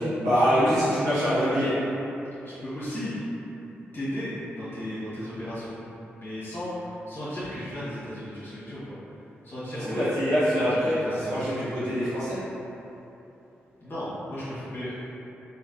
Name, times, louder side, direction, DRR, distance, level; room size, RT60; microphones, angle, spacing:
voice 1, 0.0-1.7 9.7-10.7 11.3-12.4, equal, 90° right, -13 dB, 0.8 m, -24 dB
voice 2, 2.4-3.3 3.9-5.7 6.2-9.0 9.4-10.1 10.5-11.4 13.8-15.0, equal, 45° left, -12 dB, 1.3 m, -35 dB
3.3 x 2.7 x 2.6 m, 3.0 s
supercardioid pair, 40°, 5 cm